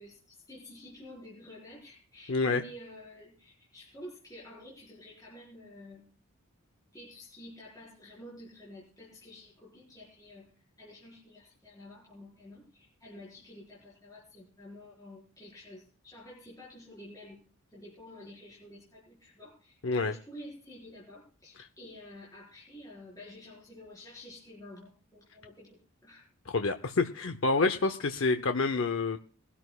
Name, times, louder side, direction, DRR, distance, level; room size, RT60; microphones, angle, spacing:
voice 1, 0.0-6.2 6.9-26.3 28.2-28.6, left 1 dB, 15° left, -6 dB, 4.8 m, -50 dB
voice 2, 2.3-2.6 19.8-20.1 26.5-29.2, left 3 dB, 60° left, 7 dB, 0.7 m, -28 dB
22.0 x 12.5 x 2.4 m, 0.39 s
head